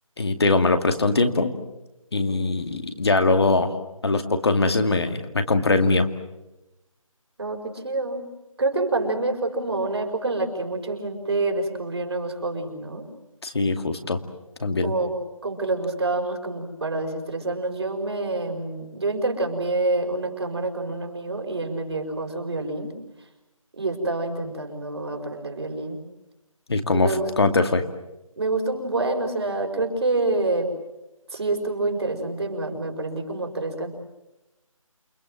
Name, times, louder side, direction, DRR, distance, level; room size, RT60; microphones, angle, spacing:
voice 1, 0.2-1.5 2.1-3.7 4.0-6.1 13.4-14.2 14.6-14.9 26.7-27.8, left 3 dB, 45° left, 7 dB, 2.3 m, -21 dB
voice 2, 7.4-8.3 8.6-13.1 14.8-15.1 15.4-22.9 23.8-26.0 26.9-27.3 28.4-30.7 31.3-33.9, right 2 dB, 50° right, 4 dB, 5.3 m, -27 dB
29.0 x 24.5 x 7.6 m, 0.96 s
figure-of-eight pair, 170°, 18 cm